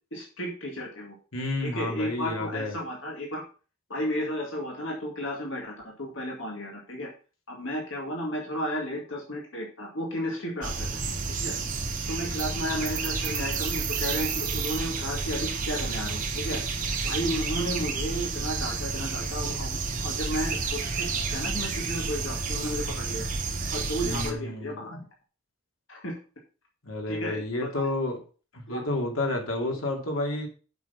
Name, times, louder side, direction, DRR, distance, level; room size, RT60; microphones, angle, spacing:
voice 1, 0.1-1.2 1.6-3.4 3.9-5.7 6.0-7.1 7.5-11.0 11.3-11.5 12.1-16.6 17.0-23.3 23.7-25.0 25.9-26.2 27.1-27.9 28.7-28.8, equal, 65° left, -1 dB, 2.3 m, -33 dB
voice 2, 1.3-2.8 24.0-24.8 26.8-28.2 28.5-30.5, left 2 dB, 90° left, 2 dB, 2.7 m, -30 dB
sound 1, 10.6-24.3, right 4 dB, 40° right, 1.6 m, -30 dB
8.2 x 6.4 x 5.8 m, 0.35 s
head